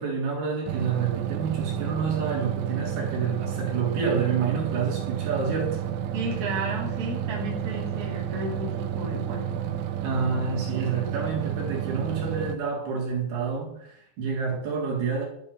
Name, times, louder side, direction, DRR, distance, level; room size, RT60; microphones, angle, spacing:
voice 1, 0.0-5.8 10.0-15.3, right 5 dB, 50° right, 5.2 m, -28 dB
sound 1, 0.7-12.6, right 9 dB, 75° right, 3.5 m, -31 dB
voice 2, 6.1-9.6, right 1 dB, 20° right, 3.3 m, -33 dB
13.0 x 9.4 x 7.0 m
omnidirectional pair, 5.9 m